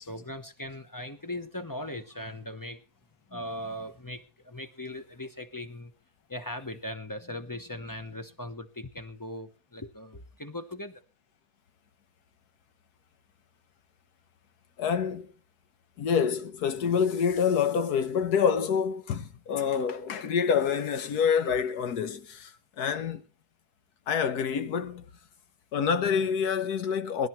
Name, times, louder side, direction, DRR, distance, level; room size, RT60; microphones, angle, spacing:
voice 1, 0.0-2.8 3.3-5.9 6.3-11.0, left 1 dB, 15° left, 0.7 m, -39 dB
voice 2, 14.8-15.3 16.0-23.2 24.1-25.0 25.7-27.3, left 7 dB, 75° left, 1.6 m, -27 dB
22.5 x 11.5 x 3.1 m
omnidirectional pair, 1.7 m